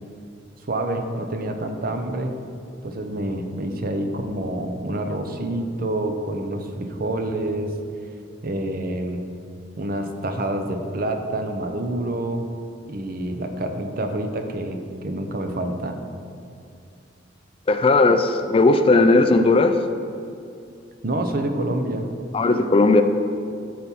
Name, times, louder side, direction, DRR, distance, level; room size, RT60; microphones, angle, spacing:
voice 1, 0.7-2.3 2.8-7.7 8.4-9.2 9.8-12.4 12.9-16.0 21.0-22.1, right 1 dB, 50° right, 6 dB, 0.8 m, -27 dB
voice 2, 17.7-19.7 22.3-23.0, left 3 dB, 30° left, 8 dB, 0.4 m, -16 dB
12.5 x 4.3 x 5.5 m, 2.5 s
head